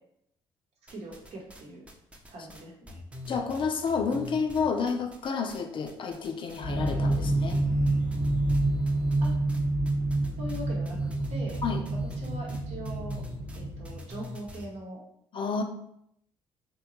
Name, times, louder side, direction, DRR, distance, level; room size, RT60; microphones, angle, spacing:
sound 1, 0.9-1.6 1.9-5.6 5.9-6.6 6.9-14.7, left 2 dB, 10° right, 0.6 m, -42 dB
voice 1, 0.9-1.8 2.3-3.0 9.2-9.4 10.4-11.0 11.3-11.6 11.9-13.2 13.5-15.0, right 1 dB, 65° right, -2 dB, 0.9 m, -41 dB
voice 2, 3.3-7.6 11.6-11.9 15.3-15.6, left 5 dB, 45° left, 5 dB, 0.4 m, -30 dB
sound 2, 6.6-14.0, right 2 dB, 35° right, 0.9 m, -28 dB
2.7 x 2.2 x 2.9 m, 0.74 s
hypercardioid pair, 55°, 12 cm